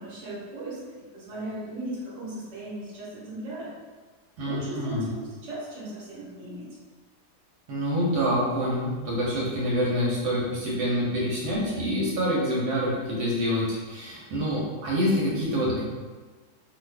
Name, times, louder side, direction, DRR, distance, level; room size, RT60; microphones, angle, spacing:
voice 1, 0.0-3.7 4.4-6.8, right 1 dB, 55° right, -7 dB, 1.2 m, -37 dB
voice 2, 4.4-5.1 7.7-15.8, equal, 80° right, -5 dB, 1.3 m, -26 dB
2.7 x 2.5 x 3.2 m, 1.3 s
omnidirectional pair, 1.7 m